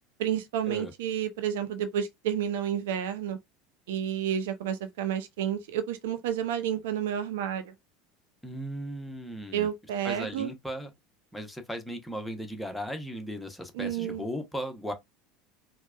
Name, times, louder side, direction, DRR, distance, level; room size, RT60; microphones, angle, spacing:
voice 1, 0.2-3.4 3.9-7.7 9.5-10.5 13.7-14.3, right 9 dB, 65° right, 0.7 m, -30 dB
voice 2, 8.4-9.7 10.0-10.9 11.3-14.9, equal, 5° left, 0.9 m, -36 dB
4.4 x 2.2 x 2.4 m
figure-of-eight pair, 75°, 0 cm